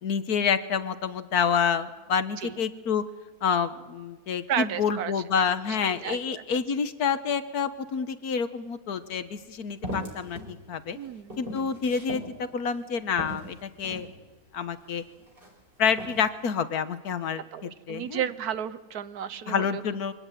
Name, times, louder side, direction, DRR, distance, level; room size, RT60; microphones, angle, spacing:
voice 1, 0.0-3.0 3.4-11.0 11.4-14.1 14.5-15.0 15.8-18.3 19.5-20.1, left 6 dB, 85° left, 12 dB, 1.7 m, -28 dB
voice 2, 4.5-5.1 5.8-6.4 10.9-11.4 17.5-19.8, right 9 dB, 85° right, 15 dB, 1.5 m, -33 dB
sound 1, 9.0-9.1 9.8-10.5 10.9-12.3 12.8-12.9 13.2-14.1 14.8-15.5 15.9-16.2, equal, 35° right, 5.4 m, -38 dB
24.0 x 17.5 x 9.1 m, 1.3 s
omnidirectional pair, 1.6 m